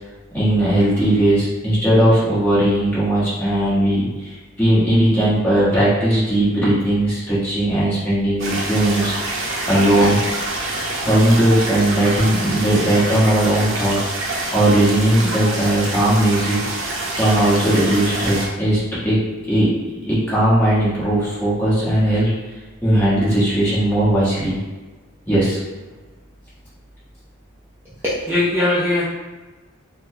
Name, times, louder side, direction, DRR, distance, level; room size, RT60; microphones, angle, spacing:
voice 1, 0.3-9.4 9.7-10.2 11.0-16.9 17.2-19.2 19.5-22.4 22.8-24.6 25.3-25.6, right 1 dB, 10° left, -10 dB, 1.0 m, -18 dB
sound 1, 8.4-18.5, right 2 dB, 70° right, 0.6 m, -26 dB
voice 2, 28.0-29.0, left 2 dB, 10° right, -10 dB, 0.4 m, -19 dB
4.0 x 2.1 x 2.7 m, 1.2 s
head